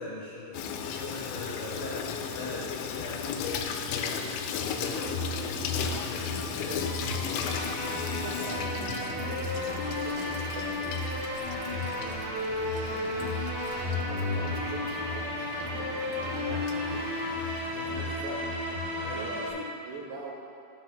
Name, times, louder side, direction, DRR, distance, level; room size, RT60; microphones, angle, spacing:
voice 1, 0.0-6.2 6.5-6.8 17.7-18.2 19.0-19.5, left 2 dB, 60° left, -11 dB, 3.8 m, -41 dB
Water tap faucet / Sink (filling or washing), 0.5-18.0, left 7 dB, 85° left, 3.1 m, -36 dB
sound 1, 5.1-19.5, left 2 dB, 50° right, 3.0 m, -33 dB
sound 2, 5.9-14.0, right 1 dB, 70° right, 3.6 m, -49 dB
voice 2, 8.1-11.0 11.4-12.4 12.9-17.1 17.7-18.4 19.1-20.3, right 3 dB, 90° right, -4 dB, 1.8 m, -43 dB
11.5 x 7.6 x 2.8 m, 2.5 s
omnidirectional pair, 5.5 m